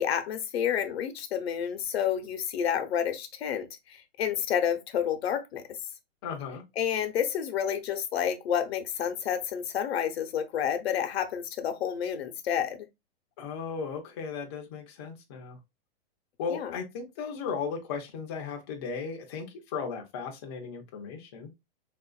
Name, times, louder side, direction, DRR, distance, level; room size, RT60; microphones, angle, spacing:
voice 1, 0.0-5.6 6.8-12.8 16.5-16.8, left 9 dB, 80° left, 0.8 m, -29 dB
voice 2, 6.2-6.6 13.4-15.6 16.4-21.5, left 5 dB, 25° left, 0.4 m, -36 dB
3.5 x 2.5 x 2.3 m
supercardioid pair, 170°, 31 cm